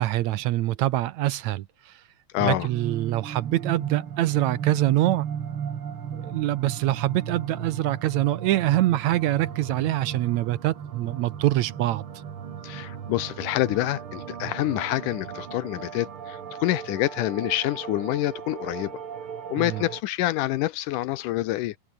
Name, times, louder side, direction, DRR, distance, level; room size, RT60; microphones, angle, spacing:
voice 1, 0.0-2.0 2.4-5.3 6.1-12.0 14.4-14.5 19.6-19.9, right 15 dB, 75° right, 1.9 m, -25 dB
voice 2, 2.3-2.7 12.6-18.9 19.5-21.7, left 15 dB, 85° left, 2.4 m, -27 dB
sound 1, 2.4-20.0, right 7 dB, 45° right, 2.4 m, -36 dB
omnidirectional pair, 3.7 m